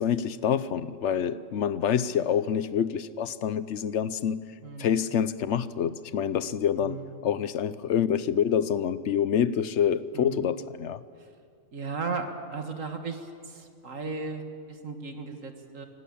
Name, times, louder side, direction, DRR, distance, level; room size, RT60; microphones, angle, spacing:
voice 1, 0.0-4.5 4.8-11.0, left 8 dB, 65° left, 1.0 m, -27 dB
voice 2, 6.8-7.2 10.1-10.5 11.7-15.8, right 4 dB, 75° right, 2.2 m, -36 dB
25.0 x 17.5 x 8.6 m
omnidirectional pair, 1.4 m